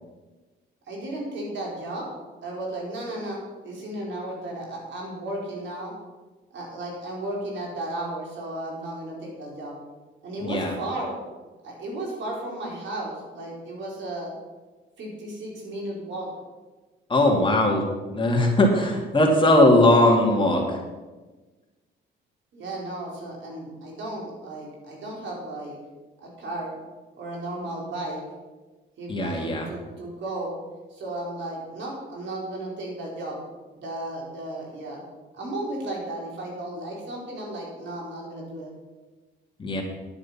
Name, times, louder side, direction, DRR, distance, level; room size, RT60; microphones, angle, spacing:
voice 1, 0.9-2.1 2.4-5.9 6.5-9.7 10.2-11.1 11.6-14.3 15.0-16.3 22.5-25.8 26.2-26.8 27.2-28.2 29.0-30.5 30.9-33.4 33.7-35.0 35.3-38.7, right 1 dB, 70° right, -2 dB, 4.5 m, -34 dB
voice 2, 10.4-10.7 17.1-20.8 29.1-29.7 39.6-39.8, left 1 dB, 25° left, 0 dB, 2.6 m, -20 dB
10.5 x 9.7 x 5.9 m, 1.2 s
cardioid pair, 90°, 20 cm